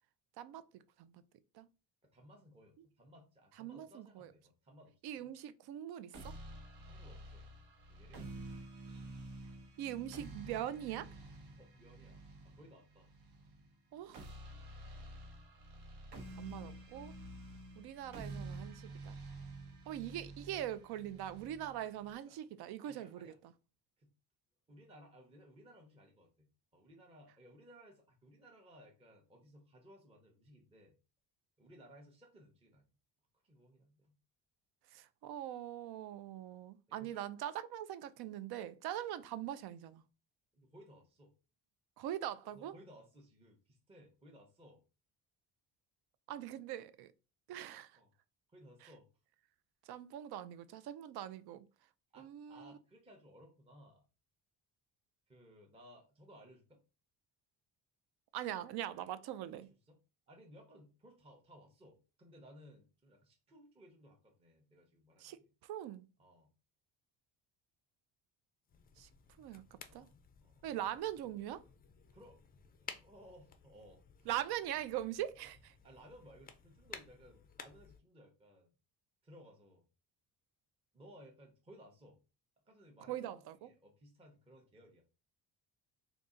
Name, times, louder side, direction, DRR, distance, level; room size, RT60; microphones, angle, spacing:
voice 1, 0.4-1.2 1.5-1.7 3.6-4.3 5.0-6.4 9.8-11.1 13.9-14.3 16.4-17.1 17.8-19.2 19.9-23.5 34.9-40.0 42.0-42.7 46.3-47.1 47.5-48.0 48.8-48.9 49.9-51.6 52.2-52.7 58.3-59.7 65.2-66.1 69.0-69.1 69.4-69.6 69.9-70.1 70.6-71.6 74.3-75.7 83.1-83.7, right 11 dB, 75° right, 0.5 m, -42 dB
voice 2, 2.0-5.3 6.9-7.5 7.9-8.4 8.9-9.2 11.6-13.1 17.5-17.7 22.2-22.4 22.8-23.4 24.0-24.1 24.7-30.9 31.6-32.9 33.4-34.2 37.0-37.3 38.6-38.7 40.5-41.3 42.4-44.8 47.9-48.1 48.5-49.1 52.1-54.0 55.3-56.8 59.5-60.0 60.3-65.5 66.2-66.5 69.9-70.2 70.4-70.6 72.1-72.4 72.8-74.3 75.8-78.7 79.2-79.8 80.9-82.2 82.7-85.0, equal, 15° right, 0.6 m, -60 dB
sound 1, 6.1-22.1, right 2 dB, 90° right, 1.1 m, -50 dB
sound 2, 68.7-78.0, left 6 dB, 25° left, 0.3 m, -55 dB
3.9 x 2.4 x 3.7 m
cardioid pair, 160°, 39 cm